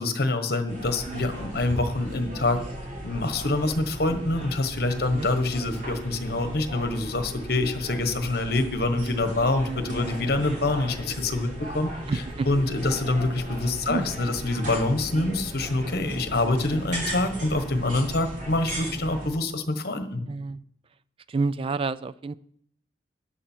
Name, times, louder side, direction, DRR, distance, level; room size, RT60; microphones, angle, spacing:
voice 1, 0.0-2.6 3.0-11.9 12.4-20.3, left 2 dB, 60° left, 8 dB, 1.3 m, -26 dB
sound 1, 0.7-19.3, right 1 dB, 50° right, 5.0 m, -36 dB
voice 2, 12.1-12.5 13.9-14.2 20.3-20.6 21.3-22.3, right 3 dB, 30° right, 16 dB, 0.3 m, -29 dB
13.0 x 10.0 x 4.5 m, 0.69 s
head